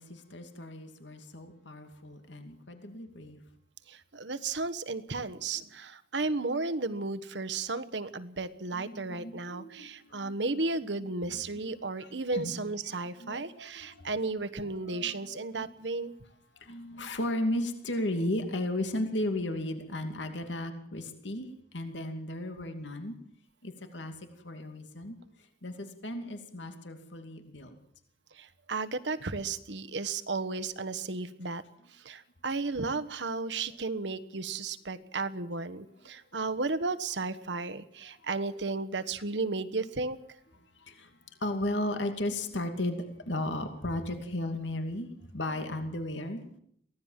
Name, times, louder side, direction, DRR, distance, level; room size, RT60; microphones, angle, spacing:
voice 1, 0.0-3.4 8.7-10.6 11.0-11.1 11.6-11.7 12.0-12.5 12.9-14.3 14.9-15.6 16.6-21.5 21.7-23.1 23.6-24.1 24.4-25.2 25.6-27.7 38.0-38.1 40.8-41.1 41.4-46.6, left 1 dB, 80° left, 6 dB, 2.6 m, -35 dB
voice 2, 3.9-16.2 28.3-31.6 31.9-40.2, right 3 dB, 70° right, 10 dB, 1.3 m, -34 dB
23.5 x 17.0 x 7.5 m, 0.66 s
head